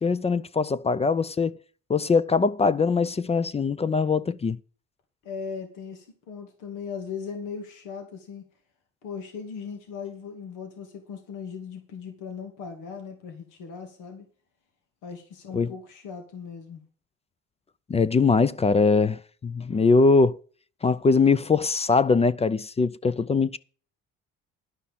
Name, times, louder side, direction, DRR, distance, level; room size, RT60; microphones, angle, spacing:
voice 1, 0.0-1.5 1.9-4.6 15.5-15.7 17.9-20.4 20.8-23.6, left 4 dB, 20° left, 0.4 m, -22 dB
voice 2, 5.2-8.5 9.0-14.3 15.0-16.8, left 6 dB, 90° left, 2.4 m, -38 dB
11.5 x 5.7 x 7.2 m
cardioid pair, 105°, 30 cm